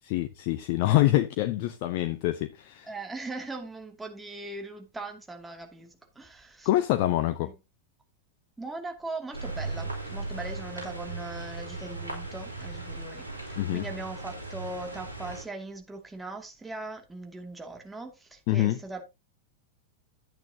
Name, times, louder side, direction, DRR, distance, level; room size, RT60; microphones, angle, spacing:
voice 1, 0.0-2.9 6.6-7.5 13.6-13.9 18.5-18.8, left 15 dB, 45° left, 0.7 m, -25 dB
voice 2, 2.8-6.7 7.4-7.5 8.6-19.0, right 2 dB, 10° right, 2.5 m, -40 dB
sound 1, 9.3-15.4, right 2 dB, 80° right, 3.4 m, -37 dB
11.0 x 8.7 x 2.8 m
figure-of-eight pair, 90°, 0 cm